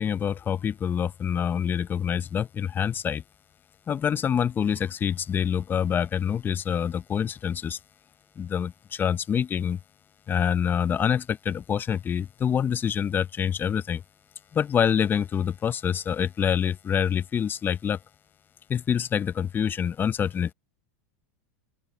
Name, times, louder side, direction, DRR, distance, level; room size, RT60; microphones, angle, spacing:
voice 1, 0.0-3.2 3.9-7.8 8.4-9.8 10.3-14.0 14.5-18.0 18.7-20.5, left 8 dB, 25° left, 0.8 m, -26 dB
open air
hypercardioid pair, 115°, 8 cm